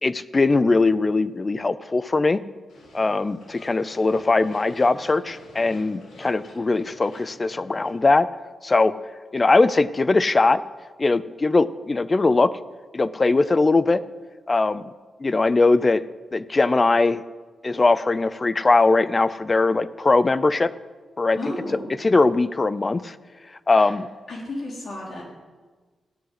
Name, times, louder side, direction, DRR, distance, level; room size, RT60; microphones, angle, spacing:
voice 1, 0.0-2.4 2.9-8.3 8.6-8.9 9.3-10.6 11.0-12.5 12.9-14.0 14.5-14.8 15.2-16.0 16.3-17.2 17.6-20.7 21.2-21.4 22.0-23.1 23.7-24.1, left 3 dB, 30° left, 15 dB, 0.5 m, -20 dB
sound 1, 2.7-7.9, left 2 dB, 90° left, 3.5 m, -47 dB
voice 2, 21.4-21.9 23.7-23.9 24.3-25.2, left 1 dB, 60° left, -3 dB, 4.1 m, -33 dB
14.5 x 6.3 x 9.5 m, 1.4 s
cardioid pair, 110°, 0 cm